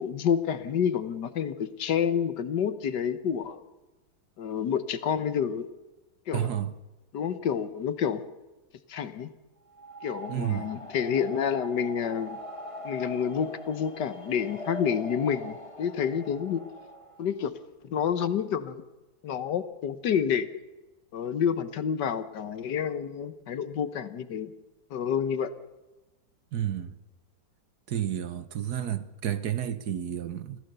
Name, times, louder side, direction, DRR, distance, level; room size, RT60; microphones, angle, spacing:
voice 1, 0.0-3.6 4.4-5.7 6.3-6.5 7.1-8.2 8.9-9.3 10.0-12.4 12.8-16.6 17.2-17.5 17.8-18.8 19.2-20.6 21.1-24.5 24.9-25.5, left 8 dB, 65° left, 1.6 m, -29 dB
voice 2, 6.3-6.7 10.3-10.7 26.5-27.0 27.9-30.6, right 10 dB, 65° right, 1.4 m, -31 dB
sound 1, 9.7-17.3, left 1 dB, 20° left, 1.4 m, -42 dB
26.0 x 16.0 x 6.8 m
omnidirectional pair, 2.0 m